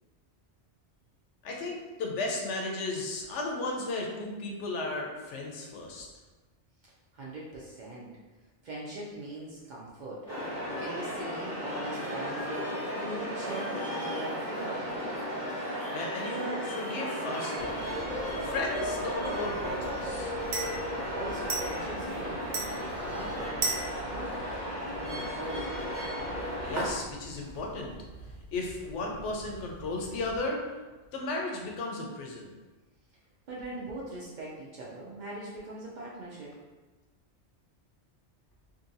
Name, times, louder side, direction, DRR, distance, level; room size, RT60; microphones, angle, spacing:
voice 1, 1.4-6.1 15.9-17.9 18.4-20.4 26.6-27.9 28.5-30.7 31.1-32.5, left 2 dB, 85° left, 0 dB, 0.9 m, -35 dB
voice 2, 7.1-8.1 8.6-10.3 10.7-12.7 13.0-14.9 21.1-24.4 25.1-25.7 33.5-36.5, right 2 dB, 60° right, -5 dB, 0.5 m, -41 dB
sound 1, 10.3-26.9, equal, 5° left, 1.4 m, -34 dB
sound 2, 17.6-30.4, right 3 dB, 75° right, 1.0 m, -40 dB
2.7 x 2.6 x 2.6 m, 1.2 s
omnidirectional pair, 1.2 m